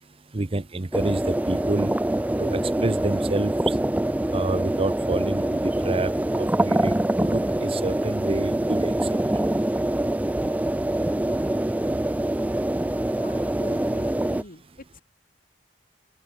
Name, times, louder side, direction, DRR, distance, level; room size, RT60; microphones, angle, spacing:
voice 1, 0.3-1.9 2.4-3.7 4.3-8.9, right 2 dB, 30° right, 0.8 m, -28 dB
sound 1, 0.9-14.4, right 1 dB, 10° right, 0.4 m, -24 dB
voice 2, 13.2-15.0, left 2 dB, 50° left, 2.1 m, -44 dB
open air
head